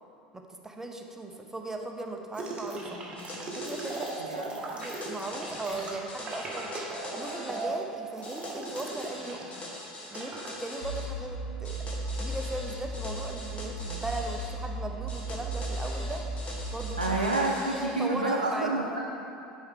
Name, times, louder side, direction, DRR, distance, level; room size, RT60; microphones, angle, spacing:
voice 1, 0.3-2.9 3.6-6.7 7.2-9.6 10.1-16.3 16.7-17.2 17.7-18.7, right 2 dB, 10° right, 3 dB, 0.7 m, -38 dB
sound 1, 2.3-9.6 9.9-10.5, right 2 dB, 25° right, 1.2 m, -38 dB
sound 2, 3.2-4.2 4.8-7.7 8.2-11.1 11.6-14.5 15.1-17.9, left 1 dB, 30° left, 1.6 m, -42 dB
voice 2, 4.2-4.5 17.0-19.0, right 2 dB, 90° right, -2 dB, 0.5 m, -28 dB
sound 3, 10.8-16.8, right 1 dB, 65° left, 1.3 m, -35 dB
9.8 x 4.5 x 3.7 m, 2.7 s
figure-of-eight pair, 75°, 4 cm